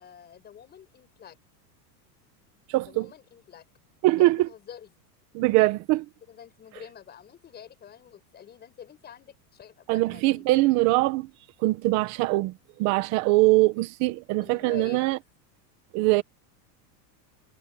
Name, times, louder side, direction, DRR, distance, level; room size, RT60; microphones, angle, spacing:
voice 1, 0.0-1.4 2.9-3.7 4.2-4.9 6.3-10.5 14.4-15.1, left 9 dB, 20° left, 6.2 m, -46 dB
voice 2, 2.7-3.1 4.0-4.4 5.3-6.0 9.9-11.3 11.6-15.2 15.9-16.2, right 20 dB, 35° right, 1.4 m, -22 dB
supercardioid pair, 170°, 49 cm